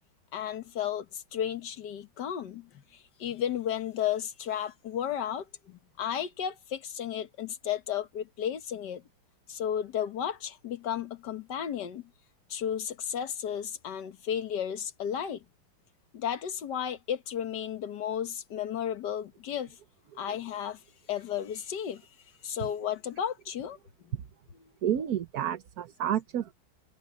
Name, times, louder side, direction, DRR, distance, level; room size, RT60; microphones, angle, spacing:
voice 1, 0.3-2.8 3.2-9.0 9.5-12.0 12.5-15.4 16.1-19.8 20.2-20.8 21.1-22.0 22.4-23.8 24.5-24.7, left 9 dB, 60° left, 1.8 m, -33 dB
voice 2, 24.8-26.5, right 10 dB, 55° right, 1.3 m, -30 dB
omnidirectional pair, 2.1 m